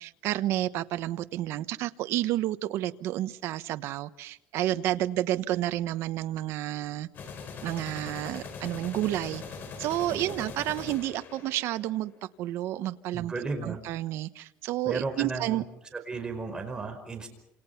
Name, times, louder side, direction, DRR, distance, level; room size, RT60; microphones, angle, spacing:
voice 1, 0.0-7.1 7.6-9.4 9.8-13.3 13.6-15.6, right 14 dB, 60° right, 12 dB, 1.1 m, -30 dB
sound 1, 7.1-12.0, left 5 dB, 40° left, 5.3 m, -41 dB
voice 2, 10.1-10.5 13.1-13.8 14.8-15.6 16.1-17.3, right 3 dB, 15° right, 4 dB, 5.2 m, -34 dB
28.5 x 28.0 x 5.8 m, 0.78 s
cardioid pair, 145°, 5 cm